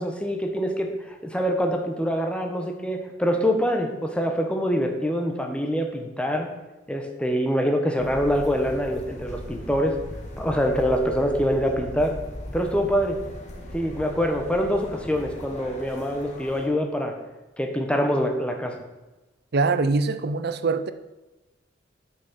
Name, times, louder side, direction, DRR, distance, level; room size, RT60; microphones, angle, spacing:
voice 1, 0.0-6.5 6.9-10.0 10.4-12.2 12.5-13.2 13.7-17.1 17.6-18.8, equal, 5° left, 1.3 m, -25 dB
sound 1, 8.0-16.7, left 1 dB, 40° left, 1.8 m, -39 dB
voice 2, 19.5-20.9, right 3 dB, 55° right, 0.6 m, -23 dB
9.3 x 6.4 x 6.4 m
head